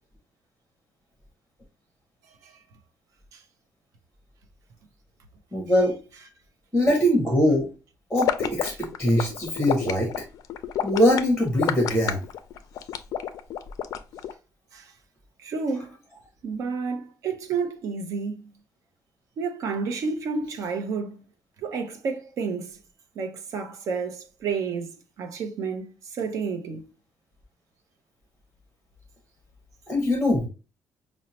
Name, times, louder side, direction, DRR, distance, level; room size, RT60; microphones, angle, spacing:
voice 1, 5.5-5.9 6.7-7.7 8.1-10.1 10.8-12.2 29.9-30.5, equal, 5° left, 0.9 m, -22 dB
sound 1, 8.2-14.3, left 10 dB, 65° left, 0.4 m, -29 dB
voice 2, 15.4-15.9 16.4-18.4 19.4-21.2 21.6-22.7 23.2-26.9, right 5 dB, 55° right, 0.7 m, -30 dB
5.3 x 2.1 x 2.8 m
cardioid pair, 180°, 6 cm